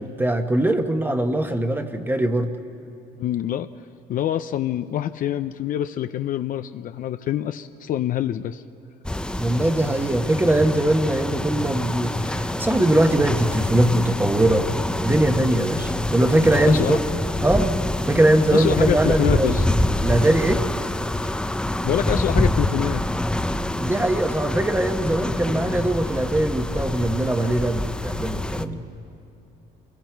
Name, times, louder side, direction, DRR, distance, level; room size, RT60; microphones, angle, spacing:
voice 1, 0.0-2.5 9.3-17.0 17.4-17.8 18.0-19.6 20.0-20.6 23.8-28.8, right 1 dB, 10° right, 6 dB, 1.1 m, -21 dB
voice 2, 3.2-3.7 4.1-8.6 16.6-17.0 18.5-19.6 21.2-21.3 21.8-23.0, left 11 dB, 55° left, 10 dB, 0.5 m, -25 dB
sound 1, 9.0-28.6, left 1 dB, 5° left, 0.6 m, -26 dB
28.0 x 22.0 x 4.6 m, 2.6 s
cardioid pair, 110°, 17 cm